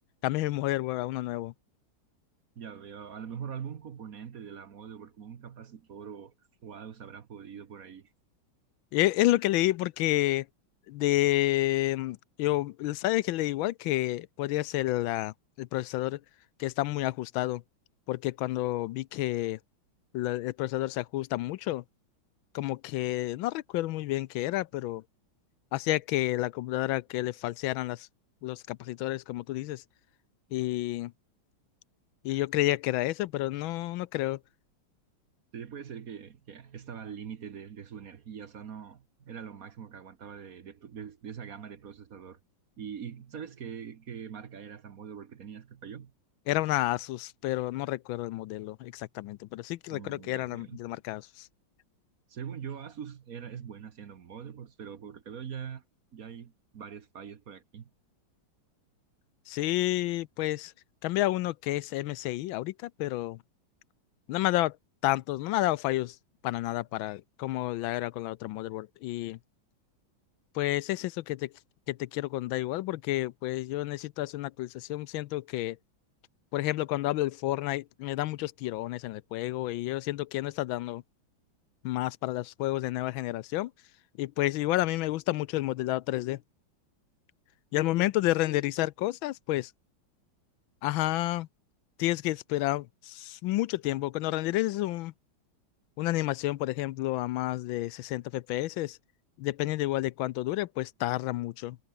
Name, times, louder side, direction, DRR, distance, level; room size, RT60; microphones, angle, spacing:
voice 1, 0.2-1.5 8.9-10.5 10.9-16.2 16.6-17.6 18.1-19.6 20.1-21.8 22.5-25.0 25.7-28.1 28.4-29.8 30.5-31.1 32.2-34.4 46.5-51.5 59.5-60.7 61.0-63.4 64.3-64.8 65.0-66.2 66.4-69.4 70.5-71.5 71.9-75.8 76.5-81.0 81.8-83.7 84.2-86.4 87.7-89.7 90.8-91.5 92.0-95.1 96.0-99.0 99.4-101.8, left 16 dB, 80° left, 1.4 m, -30 dB
voice 2, 2.6-6.3 6.6-8.1 35.5-42.4 42.8-46.1 49.9-50.8 52.3-55.8 56.1-57.9, right 8 dB, 50° right, 1.4 m, -43 dB
omnidirectional pair, 2.2 m